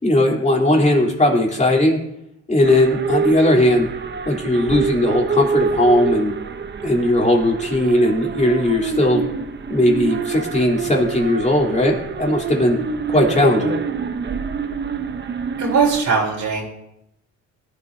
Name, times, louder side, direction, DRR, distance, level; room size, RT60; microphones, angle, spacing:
voice 1, 0.0-2.0 2.5-3.9 4.3-6.3 6.8-9.2 9.7-12.8 13.1-13.7, left 1 dB, 25° left, -2 dB, 3.9 m, -17 dB
sound 1, 2.6-16.0, right 6 dB, 35° right, 0.9 m, -26 dB
voice 2, 15.6-16.6, right 5 dB, 70° right, -3 dB, 3.7 m, -20 dB
19.0 x 12.0 x 2.8 m, 0.83 s
cardioid pair, 90°, 30 cm